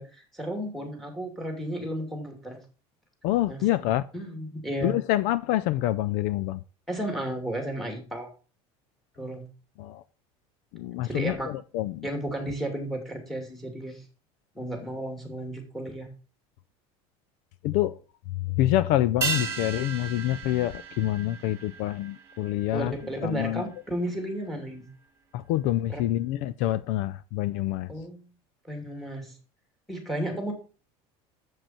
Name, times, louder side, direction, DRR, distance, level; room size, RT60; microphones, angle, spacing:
voice 1, 0.0-2.6 3.5-3.9 4.1-5.0 6.9-8.3 9.2-9.5 11.0-11.5 12.0-14.1 14.5-16.1 22.7-24.9 25.9-26.0 27.9-28.3 28.6-29.3 29.9-30.5, right 1 dB, ahead, 2.5 m, -33 dB
voice 2, 3.2-4.0 4.8-6.6 9.8-10.0 10.7-12.1 17.6-18.0 18.3-22.9 23.2-23.6 25.3-27.9, left 14 dB, 65° left, 0.4 m, -27 dB
sound 1, 19.2-23.9 24.2-24.3, right 5 dB, 20° right, 2.0 m, -35 dB
7.8 x 7.6 x 4.3 m
cardioid pair, 150°, 14 cm